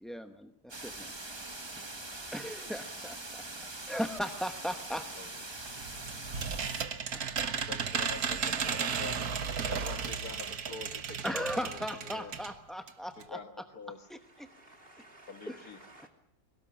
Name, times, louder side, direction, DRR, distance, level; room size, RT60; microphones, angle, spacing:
voice 1, 0.0-1.1 2.3-3.4 3.9-5.0 7.1-7.2 9.7-9.8 11.2-13.4 14.1-14.5 15.5-15.6, equal, ahead, 0.6 m, -37 dB
sound 1, 0.7-6.8, right 2 dB, 20° right, 1.3 m, -43 dB
voice 2, 5.0-5.3 7.7-9.2 9.7-12.3 13.2-14.1 15.3-15.8, left 5 dB, 75° left, 2.1 m, -46 dB
sound 2, 5.6-5.8 6.3-6.5 7.1-7.3 8.2-8.3 9.1-9.3 10.1-10.3 10.9-11.1, left 1 dB, 40° left, 7.5 m, -63 dB
sound 3, 5.6-12.5 12.9-13.0 13.2-13.3, right 6 dB, 75° right, 1.8 m, -34 dB
voice 3, 14.2-16.1, right 2 dB, 35° right, 3.2 m, -55 dB
22.5 x 18.0 x 8.7 m
omnidirectional pair, 1.6 m